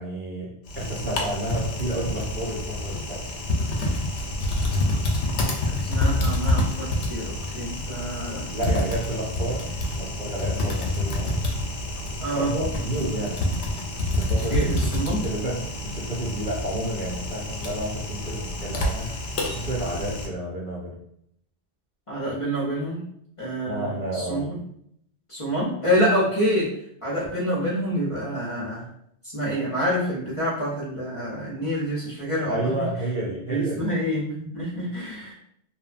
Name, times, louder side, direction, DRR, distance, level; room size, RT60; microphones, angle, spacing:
voice 1, 0.0-3.3 8.3-11.5 12.3-13.4 14.2-19.1 19.4-21.0 23.6-24.5 32.4-33.9, right 1 dB, 55° right, -4 dB, 0.7 m, -31 dB
Typing, 0.7-20.3, left 1 dB, 90° left, 0.9 m, -27 dB
voice 2, 5.7-8.5 12.2-12.5 14.5-15.2 22.1-23.0 23.4-24.5 25.3-26.7 27.0-28.9 29.3-32.8 33.5-35.3, equal, 35° left, -7 dB, 0.6 m, -27 dB
2.8 x 2.1 x 2.5 m, 0.70 s
omnidirectional pair, 1.2 m